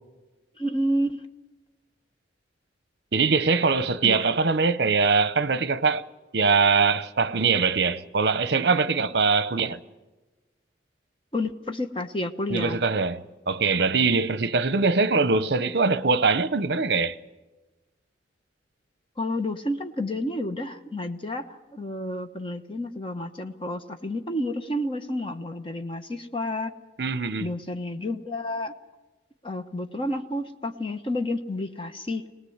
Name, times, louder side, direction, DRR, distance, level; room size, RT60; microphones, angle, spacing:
voice 1, 0.6-1.2 4.0-4.3 11.3-12.8 19.2-26.7 27.4-28.7 29.4-32.3, left 1 dB, 30° left, 1.0 m, -30 dB
voice 2, 3.1-6.0 6.3-9.8 12.5-17.2 27.0-27.5, right 4 dB, 60° right, 0.8 m, -22 dB
22.0 x 19.0 x 7.9 m
head